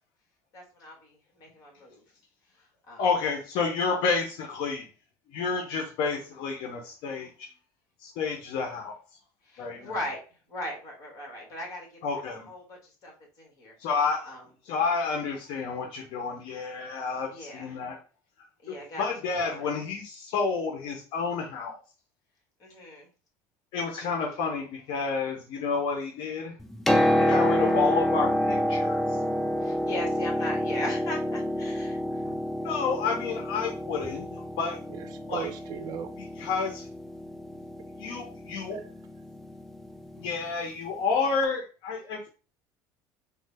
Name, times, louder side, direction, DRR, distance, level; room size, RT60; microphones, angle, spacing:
voice 1, 0.5-2.0 2.6-3.1 9.4-13.7 14.2-14.5 17.3-17.8 18.6-19.1 19.3-19.7 22.6-23.1 27.2-27.6 29.6-32.4, left 1 dB, 40° left, 1.4 m, -39 dB
voice 2, 3.0-4.8 5.3-7.5 8.0-9.0 9.6-9.9 12.0-12.5 13.8-14.3 14.7-18.0 18.7-21.8 23.7-26.5 27.2-29.2 32.6-34.8 35.3-35.5 36.4-36.9 38.0-38.8 40.2-42.3, left 5 dB, 65° left, 0.6 m, -30 dB
Piano, 26.6-40.3 41.4-41.5, equal, 5° left, 0.3 m, -28 dB
voice 3, 34.9-36.1 38.7-38.8, right 8 dB, 50° right, 0.5 m, -37 dB
3.2 x 2.0 x 3.2 m
cardioid pair, 135°, 9 cm